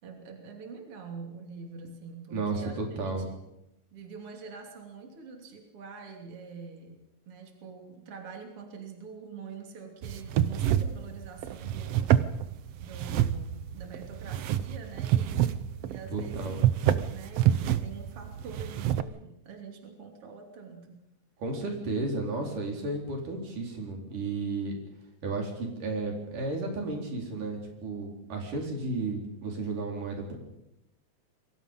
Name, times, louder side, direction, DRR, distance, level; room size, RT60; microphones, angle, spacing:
voice 1, 0.0-3.4 3.9-12.3 12.8-21.0, right 5 dB, 45° right, 3 dB, 3.7 m, -45 dB
voice 2, 2.3-3.2 16.1-16.6 21.4-24.8 25.2-30.4, right 3 dB, 85° right, 1 dB, 5.9 m, -33 dB
sound 1, 10.0-19.0, right 11 dB, 65° right, 1.7 m, -28 dB
28.0 x 22.5 x 5.5 m, 0.86 s
omnidirectional pair, 3.6 m